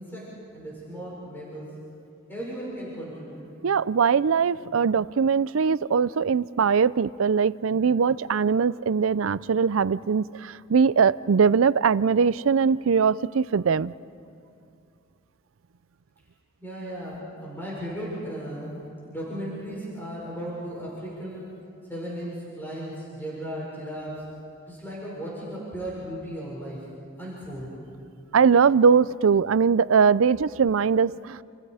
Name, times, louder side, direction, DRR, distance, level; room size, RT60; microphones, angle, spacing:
voice 1, 0.0-1.7 2.3-3.5 16.6-21.4 21.9-24.2 24.7-26.8 27.2-27.8, equal, 10° left, -6 dB, 6.3 m, -36 dB
voice 2, 3.6-13.9 28.3-31.4, right 6 dB, 85° right, 19 dB, 0.5 m, -21 dB
30.0 x 28.5 x 4.9 m, 2.5 s
head